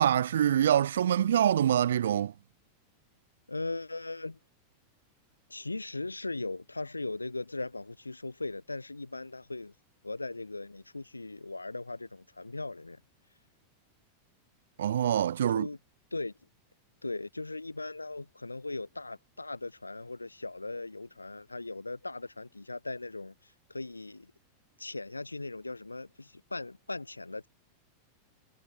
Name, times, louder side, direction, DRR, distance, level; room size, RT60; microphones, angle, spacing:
voice 1, 0.0-2.3 14.8-15.7, right 10 dB, 65° right, 0.3 m, -25 dB
voice 2, 3.5-4.4 5.5-9.7 10.0-13.0 15.5-15.8 16.1-16.3 17.0-24.3 24.8-27.5, left 2 dB, 80° left, 2.1 m, -38 dB
figure-of-eight pair, 90°, 0 cm